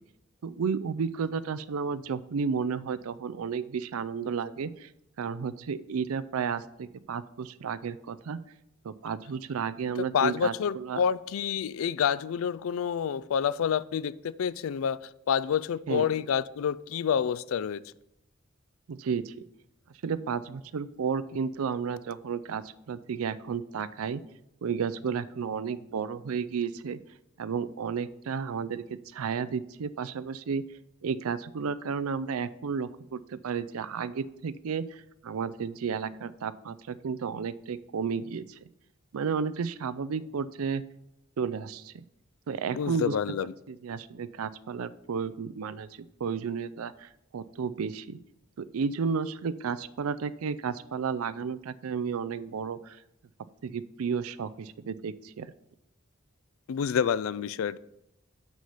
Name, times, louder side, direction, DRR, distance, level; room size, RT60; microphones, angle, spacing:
voice 1, 0.4-4.9 5.2-8.4 8.8-11.0 15.9-16.1 18.9-19.3 20.0-24.2 24.6-27.0 27.4-30.6 31.0-38.6 39.1-40.8 41.4-42.0 42.5-45.9 46.2-48.2 48.6-53.0 53.6-55.5, right 6 dB, 90° right, 15 dB, 0.4 m, -32 dB
voice 2, 10.1-15.0 15.3-17.8 42.7-43.5 56.7-57.8, left 7 dB, 70° left, 19 dB, 0.3 m, -28 dB
6.2 x 5.6 x 6.8 m, 0.82 s
head